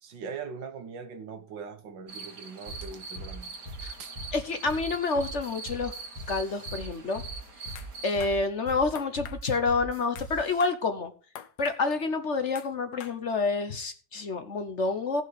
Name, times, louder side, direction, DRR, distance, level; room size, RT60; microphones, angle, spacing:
voice 1, 0.0-3.5 4.0-4.2, right 5 dB, 90° right, 2.0 m, -41 dB
sound 1, 2.1-8.1, right 4 dB, 55° right, 2.0 m, -43 dB
sound 2, 2.7-10.7, right 1 dB, 20° right, 2.0 m, -41 dB
voice 2, 4.3-5.9 6.3-7.2 8.0-11.1 11.6-15.2, left 3 dB, 50° left, 1.1 m, -28 dB
sound 3, 7.8-7.9 8.2-8.4 9.0-9.4 10.2-10.3 10.6-10.8 11.4-11.8 12.6-12.7 13.0-13.2, left 9 dB, 70° left, 1.4 m, -43 dB
17.0 x 5.7 x 4.8 m
omnidirectional pair, 1.9 m